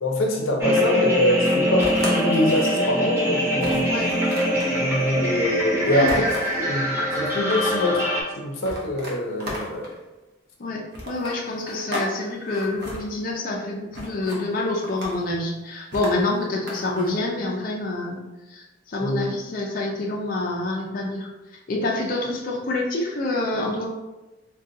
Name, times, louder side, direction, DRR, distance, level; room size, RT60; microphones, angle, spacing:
voice 1, 0.0-3.8 4.7-6.3 6.6-6.9 7.2-8.0 8.4-9.9 19.0-19.2, left 1 dB, 90° left, 1 dB, 0.6 m, -24 dB
sound 1, 0.6-8.2, equal, 15° right, 0.5 m, -23 dB
sound 2, 1.8-2.7 3.1-3.2 3.6-4.7 6.1-6.6 7.2-7.9 8.6-10.0 10.9-12.1 12.4-13.0 13.9-14.4 14.8-15.3 15.9-17.1, equal, 55° right, 0.7 m, -34 dB
voice 2, 5.8-6.2 10.6-18.2 18.5-21.3 21.7-23.9, left 2 dB, 45° left, -2 dB, 0.4 m, -27 dB
3.6 x 2.3 x 2.6 m, 1.1 s
head